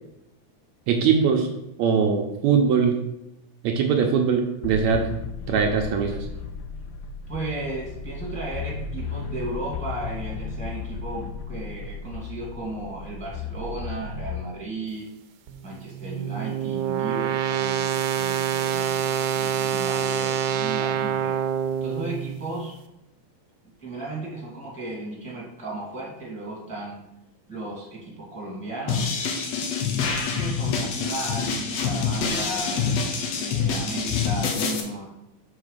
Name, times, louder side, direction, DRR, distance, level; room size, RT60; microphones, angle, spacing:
voice 1, 0.9-1.5 1.8-3.0 3.6-5.0 5.5-6.3, right 6 dB, 75° right, 2 dB, 2.0 m, -21 dB
sound 1, 4.6-14.4, left 5 dB, 90° left, 2.1 m, -35 dB
voice 2, 7.3-15.1 15.6-21.4 21.8-22.7 23.8-27.0 27.5-29.1 30.3-32.8 33.3-35.1, right 2 dB, 5° left, -4 dB, 1.4 m, -35 dB
sound 2, 15.5-22.6, right 8 dB, 90° right, 2.3 m, -26 dB
sound 3, 28.9-34.8, left 6 dB, 65° left, 2.0 m, -26 dB
6.0 x 4.6 x 6.6 m, 0.87 s
omnidirectional pair, 3.5 m